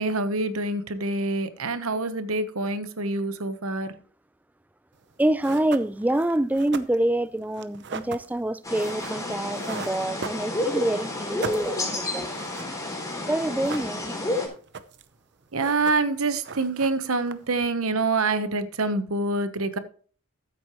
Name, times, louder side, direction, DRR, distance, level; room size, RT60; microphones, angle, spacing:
voice 1, 0.0-3.9 15.5-19.8, right 3 dB, 80° right, 1.1 m, -26 dB
sound 1, 5.0-5.1 5.4-10.9 11.2-13.0 13.4-14.3 14.6-15.2 15.4-16.2 16.4-17.7, right 5 dB, 55° right, 0.8 m, -39 dB
voice 2, 5.2-12.5 13.3-14.1, right 1 dB, 5° right, 0.4 m, -26 dB
sound 2, 8.6-14.5, left 2 dB, 15° left, 3.4 m, -30 dB
14.0 x 8.2 x 3.1 m
head